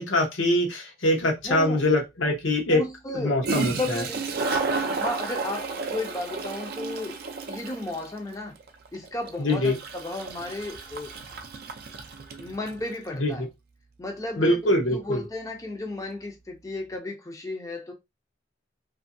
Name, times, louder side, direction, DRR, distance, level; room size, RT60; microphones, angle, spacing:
voice 1, 0.0-2.8 3.1-4.0 9.4-9.8 13.2-13.5 14.4-15.2, left 1 dB, 85° left, 0.9 m, -23 dB
voice 2, 1.4-1.8 2.7-4.2 4.8-7.2 7.5-8.5 8.9-11.1 12.4-13.5 14.0-14.6 14.9-17.9, left 2 dB, 15° left, 0.5 m, -34 dB
Toilet flush, 1.4-1.5 3.2-3.3 3.4-12.8, right 4 dB, 55° right, 0.5 m, -32 dB
2.7 x 2.5 x 2.6 m
head